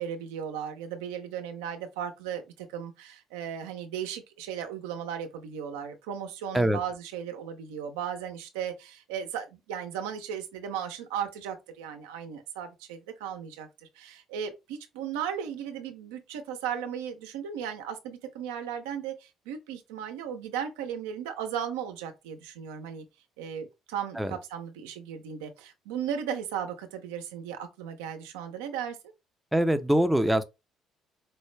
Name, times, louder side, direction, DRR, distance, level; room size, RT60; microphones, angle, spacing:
voice 1, 0.0-13.7 14.0-23.1 23.4-29.0, right 8 dB, 85° right, 0.6 m, -36 dB
voice 2, 29.5-30.4, right 1 dB, 5° right, 0.6 m, -23 dB
4.5 x 2.1 x 3.2 m
supercardioid pair, 65°, 0 cm